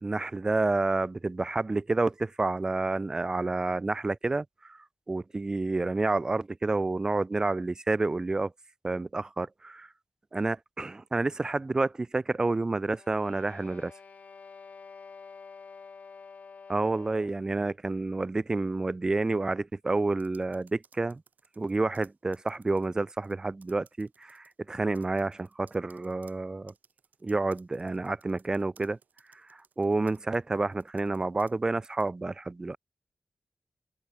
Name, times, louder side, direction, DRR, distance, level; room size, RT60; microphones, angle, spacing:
voice 1, 0.0-8.5 8.8-9.9 10.3-13.9 16.7-21.2 21.6-26.7 27.2-29.0 29.3-32.8, right 3 dB, 25° right, 0.4 m, -29 dB
sound 1, 12.8-17.5, left 5 dB, 60° left, 3.1 m, -49 dB
sound 2, 20.1-23.3 23.6-24.5 24.9-31.6 31.8-32.1, right 6 dB, 85° right, 6.7 m, -62 dB
wide cardioid pair, 140°, 3 cm